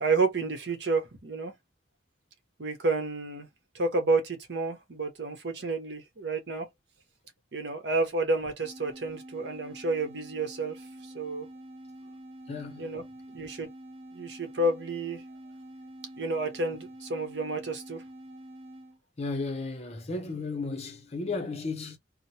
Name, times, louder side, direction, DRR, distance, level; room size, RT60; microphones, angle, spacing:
voice 1, 0.0-1.5 2.6-3.5 3.7-6.7 7.5-11.5 12.8-13.0 13.3-13.7 14.1-15.2 16.2-18.0, right 3 dB, 65° right, 0.9 m, -30 dB
sound 1, 8.6-19.0, right 1 dB, 30° right, 0.5 m, -47 dB
voice 2, 12.5-12.9 19.2-22.0, left 3 dB, 35° left, 0.6 m, -34 dB
2.9 x 2.0 x 2.7 m
head